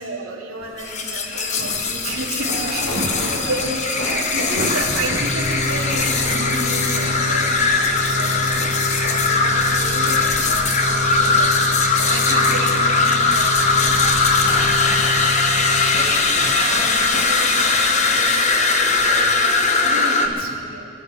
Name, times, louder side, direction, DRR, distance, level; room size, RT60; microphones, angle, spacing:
voice 1, 0.0-3.0 3.5-8.5 8.9-11.6 12.1-14.4 16.5-20.9, right 2 dB, 75° right, -3 dB, 3.2 m, -31 dB
sound 1, 0.6-19.8, left 1 dB, 85° left, 4.1 m, -35 dB
sound 2, 0.8-20.3, left 4 dB, 35° left, 1.0 m, -20 dB
voice 2, 2.4-3.6 4.5-4.8 5.1-5.2 9.3-10.2 15.0-15.4 15.9-16.9 17.8-19.8 20.2-20.7, right 1 dB, 60° right, -6 dB, 1.9 m, -34 dB
sound 3, 5.2-16.5, equal, 25° right, 4.8 m, -28 dB
24.0 x 11.0 x 4.6 m, 2.4 s
head